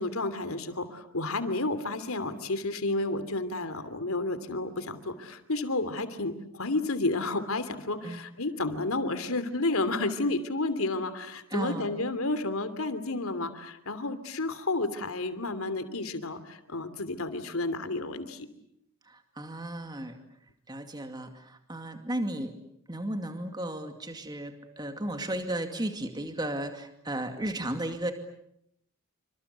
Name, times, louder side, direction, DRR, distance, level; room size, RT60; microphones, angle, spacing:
voice 1, 0.0-18.5, left 2 dB, 80° left, 11 dB, 3.0 m, -31 dB
voice 2, 11.5-11.9 19.1-20.2 20.7-22.6 22.9-28.1, right 1 dB, 20° right, 6 dB, 2.3 m, -34 dB
27.5 x 26.5 x 8.2 m, 0.74 s
head